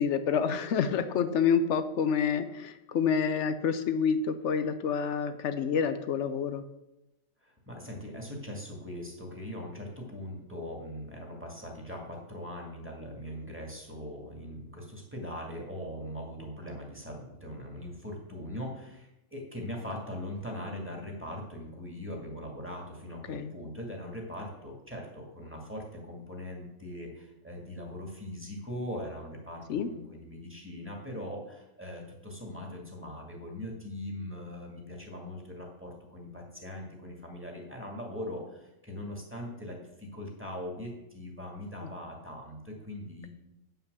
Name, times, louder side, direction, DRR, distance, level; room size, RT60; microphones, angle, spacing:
voice 1, 0.0-6.6 23.3-23.5 29.7-29.9, left 6 dB, 75° left, 10 dB, 1.0 m, -28 dB
voice 2, 7.4-43.3, left 1 dB, 10° right, -1 dB, 2.1 m, -41 dB
9.0 x 5.8 x 6.7 m, 0.95 s
omnidirectional pair, 1.2 m